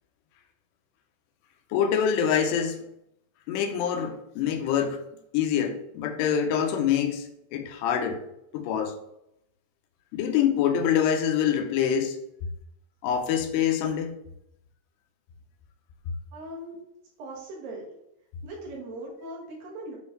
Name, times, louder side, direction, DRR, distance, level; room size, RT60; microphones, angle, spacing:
voice 1, 1.7-2.8 3.5-5.0 5.3-8.2 8.5-9.0 10.1-12.2 13.0-14.2, left 8 dB, 85° left, 2.7 m, -25 dB
voice 2, 16.3-16.8 17.2-17.8 18.4-20.0, right 1 dB, 65° right, 3.0 m, -39 dB
9.1 x 3.4 x 3.8 m
omnidirectional pair, 4.9 m